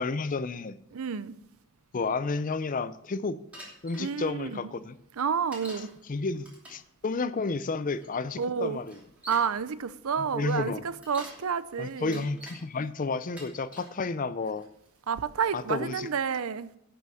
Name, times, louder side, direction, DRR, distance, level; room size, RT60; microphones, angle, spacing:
voice 1, 0.0-0.8 1.9-3.4 3.8-5.0 6.1-9.0 10.2-10.8 11.8-14.7 15.5-16.1, left 4 dB, 35° left, 0.5 m, -31 dB
voice 2, 0.9-1.4 4.0-4.6 5.2-5.9 8.4-8.8 9.3-12.2 15.1-16.7, right 6 dB, 70° right, 0.6 m, -30 dB
Bicycle, 3.5-4.1 5.5-5.9 6.4-6.9 8.0-8.1 8.8-9.5 10.8-11.4 11.9-12.6 13.2-13.9 14.6-15.0, equal, 5° right, 2.7 m, -46 dB
11.5 x 6.2 x 7.0 m
head